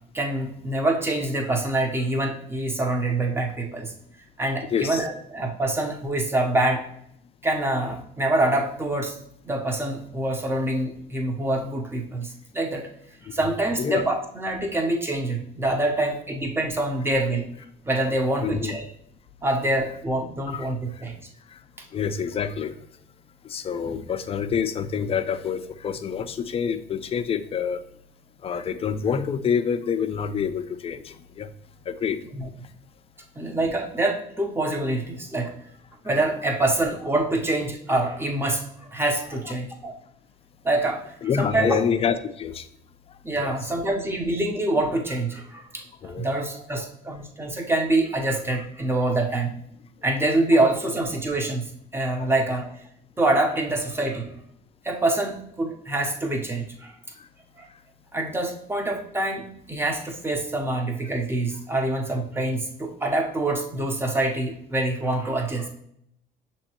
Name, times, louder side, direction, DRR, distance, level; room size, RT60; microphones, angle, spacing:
voice 1, 0.1-3.9 4.4-6.8 7.4-9.2 9.4-12.9 13.3-17.5 17.8-18.8 19.4-21.2 23.8-24.0 32.3-32.5 33.4-35.5 36.0-38.7 38.9-39.9 40.6-41.0 41.4-41.8 43.2-49.6 50.0-52.7 53.2-54.3 54.8-56.9 57.6-57.7 58.1-65.7, right 2 dB, 15° right, 2 dB, 0.8 m, -25 dB
voice 2, 4.7-5.0 13.8-14.0 18.4-18.8 20.5-20.7 21.9-22.7 23.5-27.8 28.4-31.5 31.9-32.2 41.2-42.6 43.3-43.5 46.0-46.3 52.2-52.3, left 7 dB, 35° left, 10 dB, 0.4 m, -27 dB
6.2 x 2.9 x 2.9 m, 0.71 s
cardioid pair, 110°, 17 cm